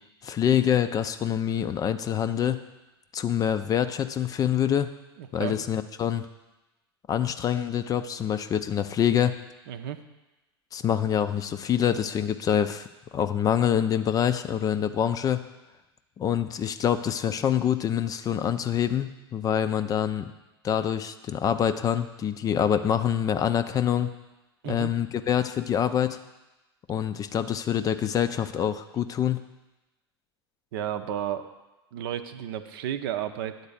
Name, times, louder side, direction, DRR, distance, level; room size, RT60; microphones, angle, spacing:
voice 1, 0.2-2.6 3.1-4.9 5.3-6.3 7.1-9.4 10.7-12.9 13.1-15.4 16.2-20.3 20.6-24.1 24.7-26.2 26.9-29.4, left 9 dB, 25° left, 10 dB, 0.5 m, -25 dB
voice 2, 5.2-5.6 9.7-10.0 24.6-24.9 30.7-31.5 31.9-33.7, right 10 dB, 60° right, 9 dB, 0.6 m, -32 dB
9.4 x 4.0 x 7.0 m, 1.0 s
figure-of-eight pair, 85°, 14 cm